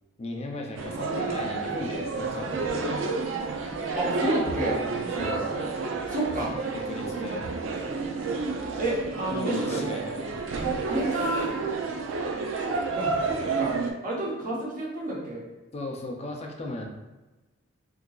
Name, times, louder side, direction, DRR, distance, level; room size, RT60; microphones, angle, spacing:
voice 1, 0.2-3.0 5.2-5.6 6.7-7.5 9.3-10.4 15.7-16.9, left 2 dB, 35° left, 1 dB, 0.5 m, -36 dB
sound 1, 0.8-13.9, right 4 dB, 70° right, 0.4 m, -30 dB
voice 2, 3.9-4.8 5.8-6.7 8.8-9.8 10.8-11.5 12.6-13.8 14.0-15.4, right 1 dB, 45° right, -5 dB, 1.0 m, -30 dB
3.7 x 2.8 x 2.3 m, 1.1 s
head